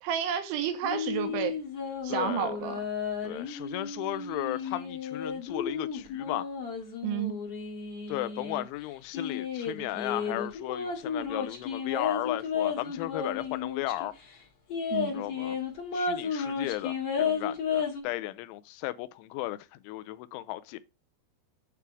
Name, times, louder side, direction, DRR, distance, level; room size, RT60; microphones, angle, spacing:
voice 1, 0.0-1.6 2.0-2.8 7.0-7.3 14.9-15.2, right 9 dB, 85° right, 3.5 m, -31 dB
sound 1, 0.8-8.6 9.1-14.1 14.3-14.4 14.7-18.0, left 6 dB, 55° left, 1.8 m, -33 dB
voice 2, 2.1-2.5 3.2-6.5 8.1-14.1 15.1-15.6 15.9-20.8, left 17 dB, 90° left, 3.0 m, -35 dB
8.3 x 3.4 x 6.0 m
omnidirectional pair, 5.4 m